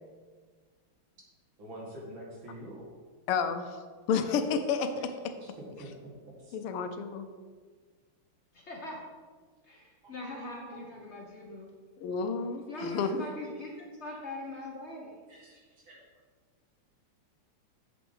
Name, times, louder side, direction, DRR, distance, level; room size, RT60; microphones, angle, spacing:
voice 1, 1.6-2.8 5.8-5.9 6.2-6.6 15.3-16.0, right 1 dB, 65° right, -4 dB, 2.7 m, -46 dB
voice 2, 3.3-3.8 4.1-5.3 6.5-7.3 12.0-13.2, left 6 dB, 90° left, 8 dB, 1.7 m, -30 dB
voice 3, 8.5-9.0 9.6-11.7 12.7-15.1, left 2 dB, 45° left, 0 dB, 0.9 m, -41 dB
7.8 x 6.0 x 5.5 m, 1.5 s
omnidirectional pair, 2.4 m